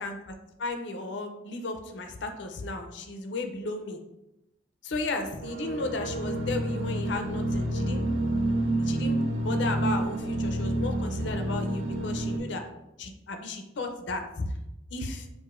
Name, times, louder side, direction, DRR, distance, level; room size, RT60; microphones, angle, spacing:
voice 1, 0.0-4.0 4.8-8.0 8.8-12.6 13.0-14.5 14.9-15.3, left 2 dB, 70° left, 5 dB, 0.5 m, -34 dB
sound 1, 5.4-12.4, right 1 dB, 90° right, 0.5 m, -29 dB
4.7 x 2.6 x 2.4 m, 0.89 s
head